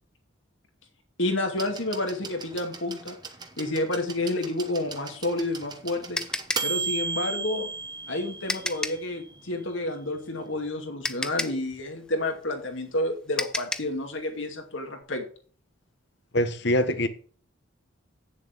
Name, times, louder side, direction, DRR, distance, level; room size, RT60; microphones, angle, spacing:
voice 1, 1.2-3.2 3.6-6.2 6.6-7.7 8.1-15.3, left 2 dB, 75° left, 4 dB, 2.4 m, -30 dB
sound 1, 1.6-9.4 10.5-10.6, right 4 dB, 20° right, 1.0 m, -36 dB
sound 2, 5.3-9.1 10.5-10.6 11.0-14.0, left 1 dB, 5° left, 0.5 m, -33 dB
voice 2, 16.3-17.1, left 1 dB, 55° left, 12 dB, 1.1 m, -23 dB
8.8 x 7.1 x 6.1 m, 0.43 s
head